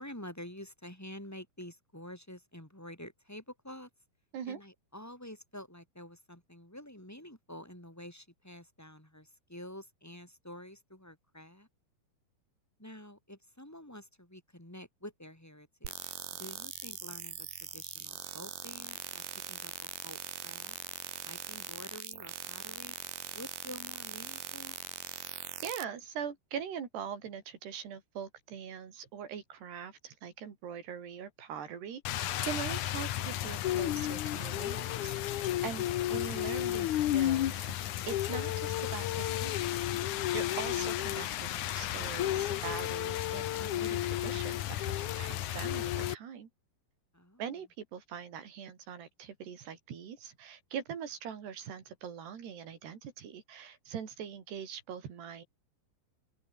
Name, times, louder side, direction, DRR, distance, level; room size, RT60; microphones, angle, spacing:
voice 1, 0.0-3.9 4.5-11.7 12.8-16.1 16.4-19.2 19.5-20.8 21.2-22.9 23.3-24.8 47.1-47.4, left 1 dB, 5° left, 5.2 m, -48 dB
sound 1, 15.8-25.8, right 12 dB, 70° right, 3.2 m, -42 dB
voice 2, 25.6-37.8 38.1-39.9 40.3-46.5 47.4-55.5, right 8 dB, 85° right, 5.4 m, -42 dB
Rain, 32.0-46.1, left 13 dB, 65° left, 2.1 m, -32 dB
open air
omnidirectional pair, 4.7 m